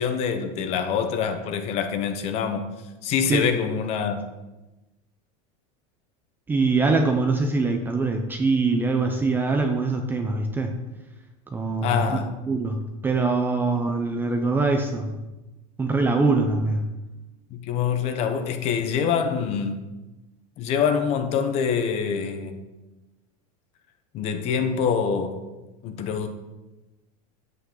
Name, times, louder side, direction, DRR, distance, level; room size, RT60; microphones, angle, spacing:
voice 1, 0.0-2.6 3.0-4.2 11.8-12.3 17.5-19.8 20.6-22.5 24.1-25.4 25.8-26.3, left 7 dB, 35° left, 0.9 m, -25 dB
voice 2, 6.5-10.7 11.5-15.1 15.8-16.8, right 3 dB, 10° right, 0.6 m, -23 dB
9.5 x 8.3 x 3.9 m
supercardioid pair, 160°, 19 cm